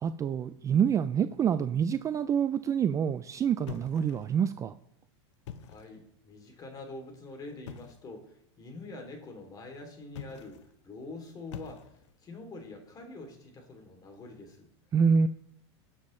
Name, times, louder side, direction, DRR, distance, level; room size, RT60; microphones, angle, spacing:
voice 1, 0.0-4.8 14.9-15.3, right 7 dB, 20° right, 12 dB, 0.4 m, -27 dB
sound 1, 3.7-4.5 5.3-6.0 7.6-8.1 10.1-10.7 11.5-12.2, left 8 dB, 80° left, 1.0 m, -45 dB
voice 2, 5.6-11.9 12.2-14.7, left 2 dB, 25° left, 4 dB, 2.8 m, -45 dB
18.5 x 7.2 x 3.2 m, 0.71 s
supercardioid pair, 130°, 15 cm